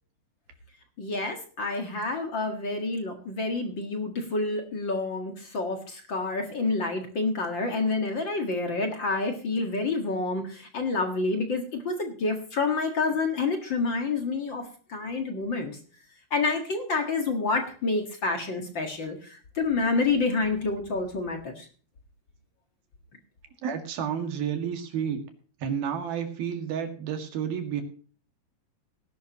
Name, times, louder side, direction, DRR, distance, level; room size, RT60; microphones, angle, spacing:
voice 1, 1.0-15.8 16.3-21.7, left 3 dB, 55° left, 4 dB, 1.3 m, -28 dB
voice 2, 23.6-25.2 25.6-27.8, right 8 dB, 65° right, 5 dB, 3.6 m, -30 dB
19.0 x 11.5 x 3.0 m, 0.41 s
omnidirectional pair, 4.9 m